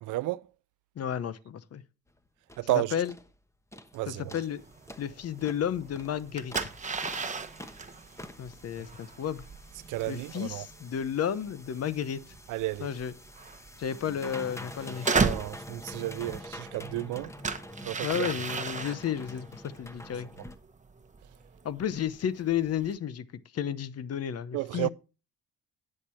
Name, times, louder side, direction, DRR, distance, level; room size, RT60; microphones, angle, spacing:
voice 1, 0.0-0.5 2.6-3.0 3.9-4.3 9.9-10.7 12.5-12.9 15.1-17.3 17.8-18.3 24.5-24.9, right 18 dB, 85° right, 0.5 m, -32 dB
voice 2, 1.0-1.8 2.7-3.1 4.1-4.6 5.0-6.7 8.4-9.4 10.1-12.2 12.8-13.1 13.8-15.1 18.0-20.3 21.6-23.3 23.5-24.9, left 9 dB, 55° left, 0.8 m, -32 dB
sound 1, 2.1-2.2 2.5-2.7 3.0-3.3 3.7-4.0 4.3-20.6, left 1 dB, 10° left, 1.1 m, -46 dB
sound 2, 4.6-23.0, right 4 dB, 25° right, 1.0 m, -36 dB
9.9 x 6.6 x 4.4 m
cardioid pair, 90°, 30 cm